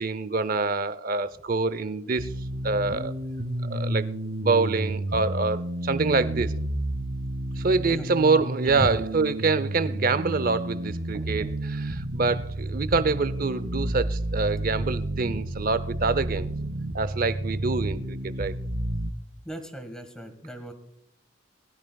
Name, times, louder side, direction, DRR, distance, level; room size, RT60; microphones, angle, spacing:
voice 1, 0.0-2.3 2.6-3.1 3.7-4.1 4.4-6.5 7.6-16.5 16.9-18.6, right 4 dB, 45° right, 15 dB, 0.6 m, -26 dB
sound 1, 2.2-19.1, right 1 dB, 70° right, 1.6 m, -31 dB
voice 2, 19.4-20.7, equal, 5° left, 5 dB, 1.7 m, -35 dB
20.5 x 12.5 x 2.3 m, 0.78 s
head